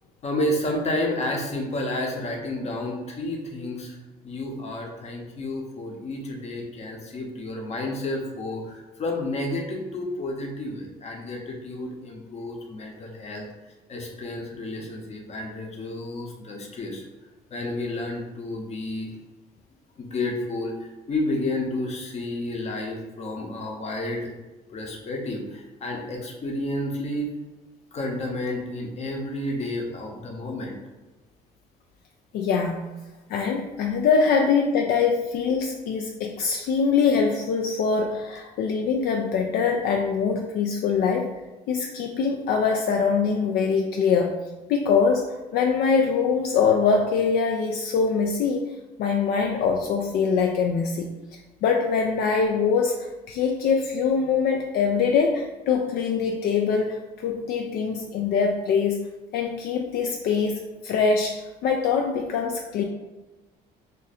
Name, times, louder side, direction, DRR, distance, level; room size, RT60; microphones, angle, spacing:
voice 1, 0.2-13.4 13.9-17.0 17.5-19.1 20.0-24.3 24.7-27.3 27.9-30.8, left 1 dB, 40° left, 1 dB, 0.8 m, -31 dB
voice 2, 32.3-32.8 33.3-41.3 41.7-44.4 44.7-48.7 49.0-59.1 59.3-62.8, left 5 dB, 70° left, 2 dB, 0.4 m, -23 dB
2.6 x 2.6 x 4.0 m, 1.1 s
cardioid pair, 110°, 17 cm